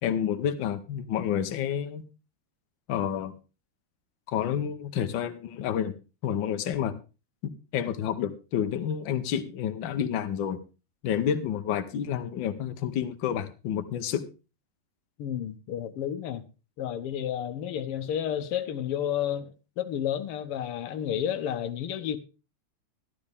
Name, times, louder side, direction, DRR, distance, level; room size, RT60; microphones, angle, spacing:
voice 1, 0.0-2.0 2.9-3.3 4.3-5.9 6.2-6.9 7.4-10.6 11.0-14.3, left 9 dB, 65° left, 1.6 m, -29 dB
voice 2, 15.2-16.4 16.8-22.2, left 10 dB, 85° left, 1.8 m, -31 dB
12.0 x 12.0 x 3.5 m
omnidirectional pair, 2.4 m